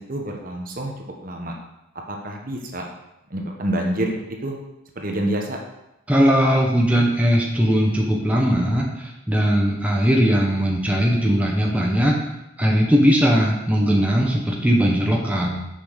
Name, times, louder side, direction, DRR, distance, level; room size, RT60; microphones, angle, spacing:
voice 1, 0.1-0.9 1.2-1.5 2.1-2.8 3.3-4.6 5.0-5.6, right 1 dB, 40° right, 1 dB, 1.2 m, -27 dB
voice 2, 6.1-12.1 12.6-15.7, equal, 5° right, -2 dB, 1.1 m, -19 dB
7.1 x 6.1 x 6.4 m, 0.93 s
head